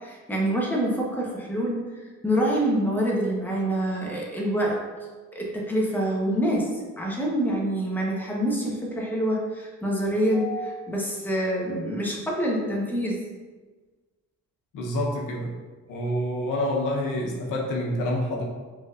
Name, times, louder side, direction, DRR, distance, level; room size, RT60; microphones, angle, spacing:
voice 1, 0.0-1.8 2.2-4.8 5.3-13.2, equal, 5° left, -3 dB, 1.0 m, -26 dB
voice 2, 14.7-15.5 15.9-18.4, left 1 dB, 90° left, -2 dB, 1.0 m, -27 dB
5.0 x 3.7 x 2.5 m, 1.3 s
cardioid pair, 95°, 31 cm